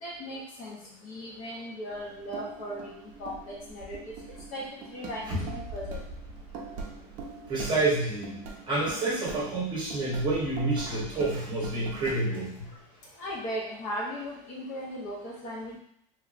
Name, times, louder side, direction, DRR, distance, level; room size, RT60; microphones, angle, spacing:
voice 1, 0.0-2.9 3.2-4.0 4.5-4.6 4.9-6.0 13.2-15.8, equal, 40° left, -3 dB, 0.8 m, -37 dB
sound 1, 1.9-12.2, right 3 dB, 40° right, 0.5 m, -42 dB
voice 2, 7.5-12.7, right 2 dB, 25° right, -6 dB, 0.9 m, -29 dB
3.1 x 2.8 x 2.4 m, 0.73 s
cardioid pair, 175°, 20 cm